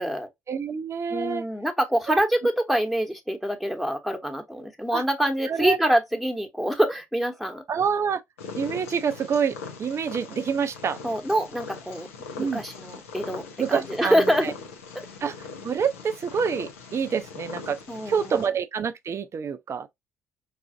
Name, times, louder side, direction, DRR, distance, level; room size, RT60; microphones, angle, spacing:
voice 1, 0.5-1.4 2.1-2.2 4.9-5.0 5.5-5.8 7.7-8.2 8.6-11.0 12.4-12.6 13.6-14.5 15.2-15.3 15.6-17.8 18.1-19.9, right 6 dB, 45° right, 0.5 m, -27 dB
voice 2, 1.1-7.6 11.0-12.1 12.4-14.5 14.9-15.1 17.9-18.4, equal, ahead, 1.1 m, -25 dB
Purr, 8.4-18.5, left 5 dB, 90° left, 0.6 m, -41 dB
4.7 x 2.5 x 2.5 m
hypercardioid pair, 50°, 7 cm